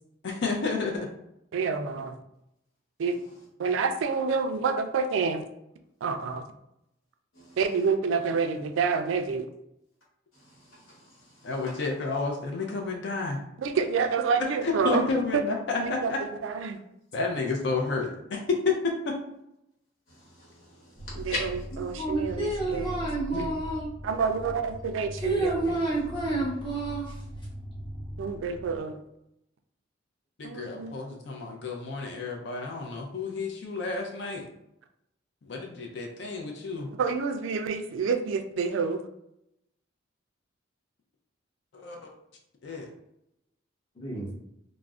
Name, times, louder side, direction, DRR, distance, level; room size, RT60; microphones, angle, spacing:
voice 1, 0.2-1.1 11.4-13.4 14.6-16.2 17.1-19.2 23.3-23.5 30.4-34.4 35.4-36.9 41.7-42.0 42.6-42.9, left 4 dB, 60° left, 0.4 m, -30 dB
voice 2, 1.5-2.2 3.0-3.2 3.6-5.4 6.0-6.4 7.6-9.5 13.6-15.0 15.8-16.8 21.2-23.0 24.0-25.6 28.2-29.0 30.4-30.9 37.0-39.0, right 5 dB, 70° right, 0.3 m, -28 dB
voice 3, 10.3-11.7 20.1-22.0, left 1 dB, 80° left, 1.1 m, -40 dB
sound 1, 21.0-28.8, equal, 5° right, 0.7 m, -40 dB
voice 4, 22.0-23.9 25.2-27.1 44.0-44.3, right 2 dB, 25° left, 0.7 m, -29 dB
2.4 x 2.0 x 3.5 m
head